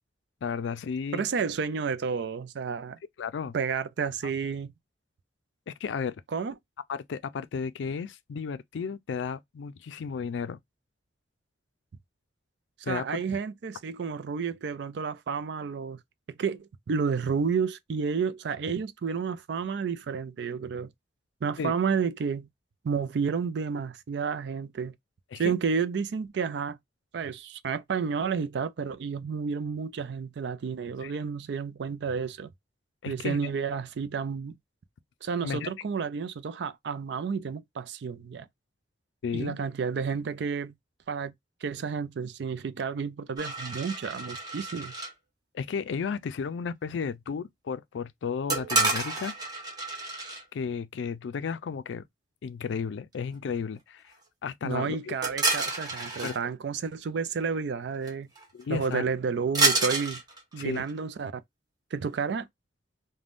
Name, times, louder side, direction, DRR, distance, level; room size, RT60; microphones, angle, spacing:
voice 1, 0.4-1.2 3.2-3.5 5.7-6.2 6.9-10.6 12.9-13.1 21.6-21.7 25.3-25.5 31.0-31.1 33.0-33.5 35.4-35.7 39.2-39.6 45.5-49.3 50.5-52.0 52.4-54.1 54.4-55.1 56.2-56.3 58.5-59.0 60.6-60.8, left 6 dB, 85° left, 0.4 m, -33 dB
voice 2, 1.1-3.0 3.5-4.7 6.3-6.5 12.9-16.0 16.3-20.9 21.4-22.5 22.8-24.9 25.4-26.8 27.1-32.5 33.1-34.6 35.2-38.5 39.3-40.7 41.1-41.3 41.6-44.9 54.6-58.3 58.7-60.2 60.5-61.4 61.9-62.5, right 6 dB, 70° right, 0.4 m, -31 dB
sound 1, 43.4-45.1 48.5-50.4 55.2-56.4 58.0-58.1 58.3-58.6 59.5-61.0, right 2 dB, 25° right, 1.1 m, -29 dB
3.4 x 2.2 x 2.4 m
head